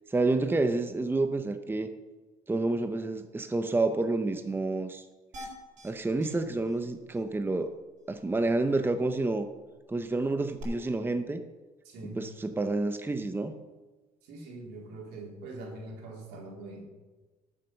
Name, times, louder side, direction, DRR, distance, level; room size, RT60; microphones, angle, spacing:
voice 1, 0.1-1.9 2.5-5.0 5.8-7.7 8.1-9.5 9.9-11.4 12.2-13.5, right 2 dB, 15° right, 8 dB, 0.8 m, -29 dB
sound 1, 5.3-5.9 6.2-6.3 6.6-6.8 7.1-7.2 10.6-10.7, equal, 45° right, 4.1 m, -44 dB
voice 2, 11.8-12.2 14.2-16.8, right 2 dB, 85° right, -1 dB, 3.7 m, -43 dB
13.5 x 7.4 x 5.8 m, 1.2 s
cardioid pair, 110°, 17 cm